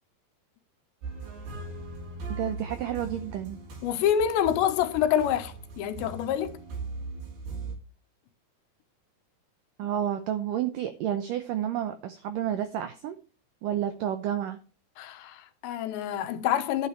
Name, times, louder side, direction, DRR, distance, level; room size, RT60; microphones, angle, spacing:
sound 1, 1.0-7.8, right 3 dB, 65° right, 5.4 m, -39 dB
voice 1, 2.3-3.6 9.8-13.2 13.6-14.6, right 10 dB, 85° right, 1.9 m, -30 dB
voice 2, 3.8-6.6 15.0-16.9, left 9 dB, 85° left, 3.4 m, -27 dB
11.5 x 9.9 x 3.2 m
omnidirectional pair, 4.9 m